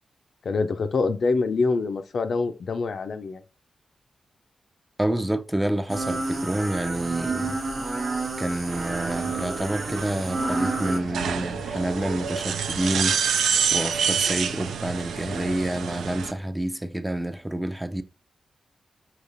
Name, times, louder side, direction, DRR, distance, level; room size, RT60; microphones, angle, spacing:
voice 1, 0.4-3.4, left 4 dB, 70° left, 0.4 m, -25 dB
voice 2, 5.0-7.6 8.4-13.4 13.7-18.0, right 1 dB, 10° right, 0.5 m, -28 dB
sound 1, 5.9-11.0, right 3 dB, 55° right, 0.7 m, -29 dB
sound 2, 8.7-16.3, right 7 dB, 85° right, 0.3 m, -28 dB
5.0 x 2.9 x 2.6 m
supercardioid pair, 45°, 0 cm